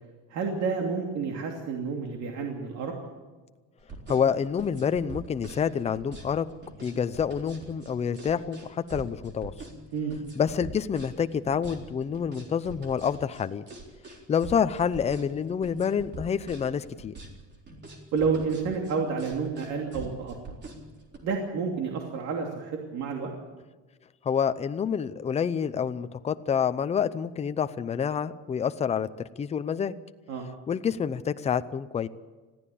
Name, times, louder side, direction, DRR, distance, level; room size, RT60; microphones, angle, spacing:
voice 1, 0.3-2.9 9.9-10.1 18.1-20.3 21.2-23.3 30.3-30.5, right 5 dB, 60° right, 1 dB, 2.8 m, -30 dB
sound 1, 3.8-21.2, right 3 dB, 35° right, 3.9 m, -44 dB
voice 2, 4.1-6.5 6.8-9.5 10.4-13.7 14.3-17.1 24.2-29.1 29.4-29.9 30.7-32.1, left 7 dB, 20° left, 11 dB, 0.6 m, -28 dB
21.0 x 15.0 x 8.6 m, 1.3 s
cardioid pair, 150°, 30 cm